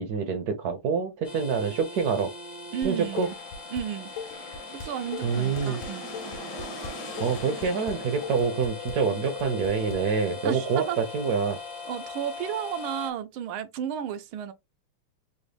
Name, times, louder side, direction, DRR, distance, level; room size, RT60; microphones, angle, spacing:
voice 1, 0.0-2.3 2.8-3.3 5.2-5.8 7.2-11.6, right 5 dB, 65° right, 0.9 m, -26 dB
sound 1, 1.2-13.1, left 4 dB, 35° left, 0.6 m, -40 dB
voice 2, 2.7-3.3 3.7-4.1 4.7-6.0 10.4-11.1 11.9-14.5, right 9 dB, 85° right, 1.5 m, -33 dB
Dishes pots and pans, 2.8-3.8 4.2-10.0, left 5 dB, 80° left, 1.3 m, -39 dB
sound 2, 2.9-10.5, left 1 dB, 50° left, 1.0 m, -43 dB
4.0 x 2.1 x 3.3 m
omnidirectional pair, 2.3 m